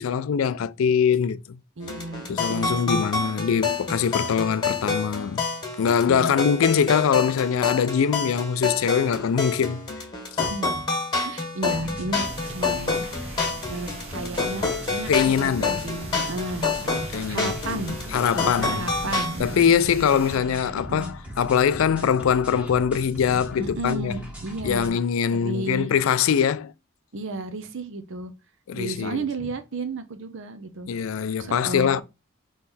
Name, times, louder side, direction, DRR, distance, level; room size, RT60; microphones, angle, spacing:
voice 1, 0.0-1.6 2.3-5.4 5.8-9.8 15.1-15.8 17.1-17.8 18.1-24.2 24.6-26.7 28.7-29.3 30.9-32.0, left 7 dB, 70° left, 0.4 m, -23 dB
sound 1, 1.8-19.4, left 4 dB, 20° left, 1.6 m, -28 dB
voice 2, 1.8-3.1 6.1-6.4 10.4-10.9 11.2-13.0 13.7-18.0 18.3-19.7 20.7-21.1 23.6-25.0 25.3-25.9 27.1-28.3 28.7-30.9 31.4-32.0, right 2 dB, 60° right, 0.7 m, -33 dB
sound 2, 11.6-24.9, right 1 dB, 5° right, 1.4 m, -39 dB
sound 3, 12.2-20.4, right 2 dB, 30° right, 1.2 m, -42 dB
3.7 x 3.1 x 4.1 m
head